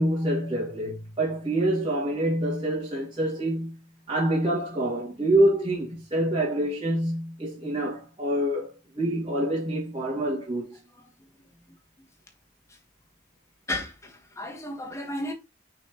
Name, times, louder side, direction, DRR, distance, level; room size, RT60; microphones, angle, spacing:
voice 1, 0.0-3.8 4.1-10.8, right 1 dB, 25° right, 2.2 m, -26 dB
voice 2, 13.7-15.3, left 1 dB, 15° left, 1.4 m, -33 dB
6.0 x 5.7 x 3.0 m
head